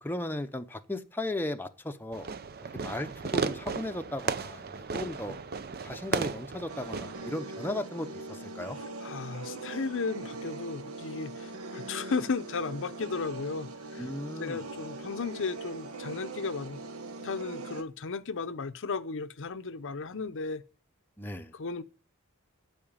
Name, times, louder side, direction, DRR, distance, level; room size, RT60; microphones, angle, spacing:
voice 1, 0.0-2.3 2.7-5.4 5.8-8.8 14.0-14.6 21.2-21.5, left 1 dB, 10° left, 0.7 m, -36 dB
Fireworks, 2.1-7.3, right 5 dB, 45° right, 0.6 m, -35 dB
sound 1, 6.7-17.8, right 2 dB, 75° right, 1.2 m, -41 dB
voice 2, 9.0-14.1 14.4-16.8 17.2-20.6 21.5-21.8, left 4 dB, 60° left, 0.7 m, -35 dB
8.9 x 7.7 x 8.8 m
head